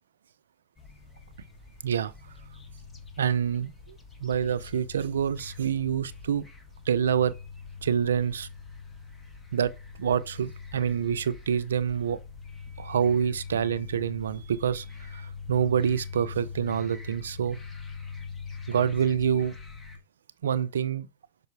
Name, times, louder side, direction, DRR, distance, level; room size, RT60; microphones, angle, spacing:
sound 1, 0.8-20.0, left 5 dB, 15° left, 1.7 m, -43 dB
voice 1, 3.2-6.4 6.9-7.3 7.8-8.5 9.5-9.7 10.0-12.2 12.8-17.6 18.7-19.5 20.4-21.1, right 8 dB, 85° right, 0.6 m, -27 dB
6.5 x 5.4 x 4.7 m
hypercardioid pair, 105°, 0 cm